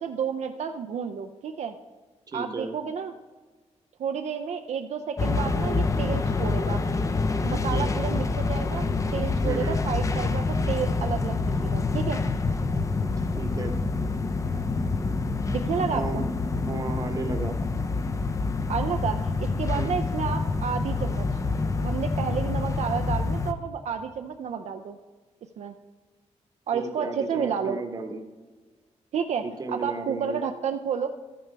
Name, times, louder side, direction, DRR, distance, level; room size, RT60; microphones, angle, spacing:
voice 1, 0.0-1.8 2.3-3.1 4.0-6.8 7.4-12.2 15.5-16.3 18.7-21.3 21.8-25.0 25.6-25.7 26.7-27.8 29.1-31.1, right 7 dB, 65° right, 6 dB, 0.5 m, -31 dB
voice 2, 2.3-2.7 7.5-7.9 9.4-9.8 13.0-13.1 13.4-13.7 15.8-16.3 16.6-17.5 19.7-20.0 26.7-28.2 29.4-30.4, right 3 dB, 30° right, 6 dB, 0.9 m, -34 dB
sound 1, 5.2-23.5, left 3 dB, 25° left, 0.5 m, -27 dB
13.0 x 9.1 x 3.4 m, 1.4 s
wide cardioid pair, 140°, 12 cm